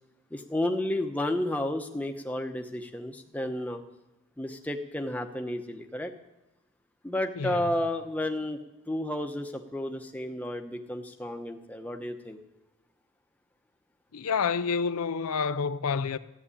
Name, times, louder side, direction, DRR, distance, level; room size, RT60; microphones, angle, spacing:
voice 1, 0.3-3.8 4.4-6.1 7.0-8.6 8.9-12.4, left 1 dB, 5° left, 0.9 m, -32 dB
voice 2, 14.1-16.2, left 5 dB, 80° left, 0.6 m, -28 dB
14.0 x 8.0 x 9.9 m
head